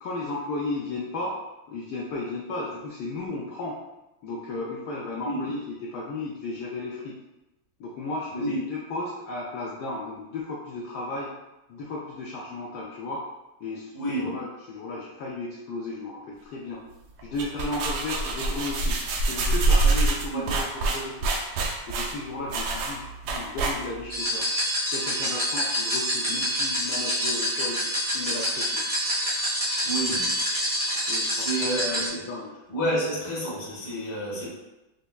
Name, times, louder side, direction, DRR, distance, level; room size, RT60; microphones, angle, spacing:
voice 1, 0.0-1.4 1.7-3.8 4.2-7.1 7.8-11.3 11.7-13.2 13.6-16.8 17.2-21.3 21.9-24.5 24.8-28.8 31.1-31.7 32.1-32.5, left 2 dB, 90° left, -4 dB, 0.8 m, -34 dB
voice 2, 13.9-14.3 20.3-20.5 29.8-30.4 31.3-32.2 32.7-34.5, right 1 dB, 20° left, -5 dB, 0.5 m, -29 dB
sound 1, 17.2-24.1, right 2 dB, 75° right, 1.2 m, -25 dB
sound 2, 24.1-32.1, equal, 30° right, 0.7 m, -27 dB
5.1 x 2.1 x 2.3 m, 1.0 s
omnidirectional pair, 2.3 m